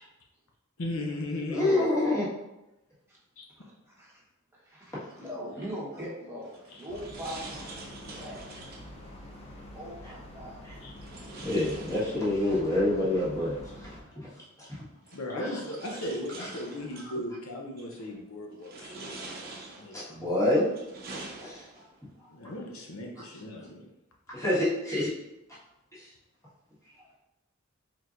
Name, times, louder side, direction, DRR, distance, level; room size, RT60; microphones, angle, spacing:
voice 1, 0.8-1.8 3.4-3.5 6.7-6.8 10.8-11.0 15.1-19.1 19.8-20.4 22.3-23.9, left 1 dB, 75° left, 0 dB, 0.7 m, -37 dB
voice 2, 1.5-2.3 11.4-13.9 14.1-14.3 14.6-14.8 15.3-15.6 19.9-20.6 21.4-21.6 24.3-25.1 25.9-26.0, left 1 dB, 15° left, -8 dB, 1.5 m, -27 dB
voice 3, 3.6-4.2 4.5-8.4 9.7-10.6, equal, 10° right, -6 dB, 1.2 m, -41 dB
sound 1, 6.4-8.9 11.0-12.6 14.0-14.1 15.1-17.1 17.8-18.2 18.6-20.1 20.6-22.0, right 2 dB, 50° right, 0.7 m, -45 dB
sound 2, 6.9-14.0, left 1 dB, 30° left, 0.8 m, -46 dB
4.5 x 3.8 x 2.5 m, 0.94 s
head